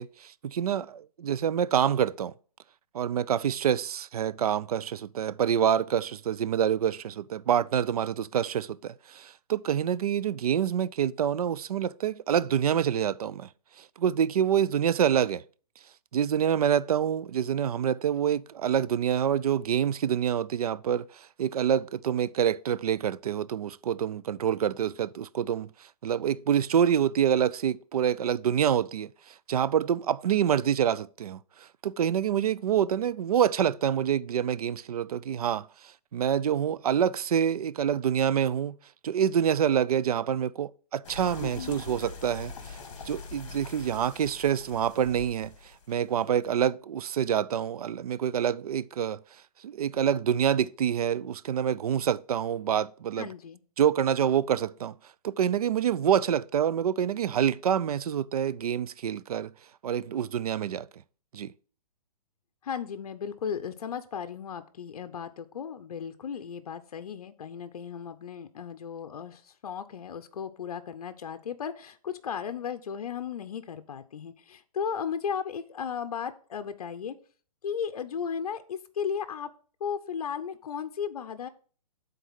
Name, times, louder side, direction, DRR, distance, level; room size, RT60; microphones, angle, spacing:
voice 1, 0.0-2.3 2.9-13.5 13.8-15.4 16.1-25.7 26.0-35.7 36.1-38.8 39.0-42.8 43.1-45.5 45.9-49.2 49.6-53.3 53.8-54.9 55.2-59.5 59.8-60.9 61.3-61.5, right 9 dB, 75° right, 0.4 m, -27 dB
sound 1, 41.0-46.5, left 5 dB, 55° left, 1.6 m, -44 dB
voice 2, 41.4-41.8 53.2-53.6 62.6-77.2 77.6-79.5 79.8-81.5, left 7 dB, 70° left, 0.7 m, -35 dB
9.3 x 4.0 x 5.7 m
hypercardioid pair, 170°, 20 cm